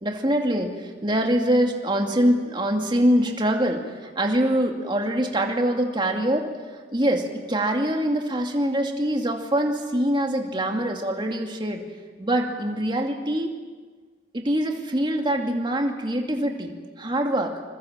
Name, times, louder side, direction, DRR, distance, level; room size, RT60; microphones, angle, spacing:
voice 1, 0.0-6.5 6.7-11.8 12.2-13.5 14.3-17.5, right 1 dB, 25° right, 2 dB, 2.5 m, -24 dB
26.5 x 22.0 x 7.5 m, 1.4 s
head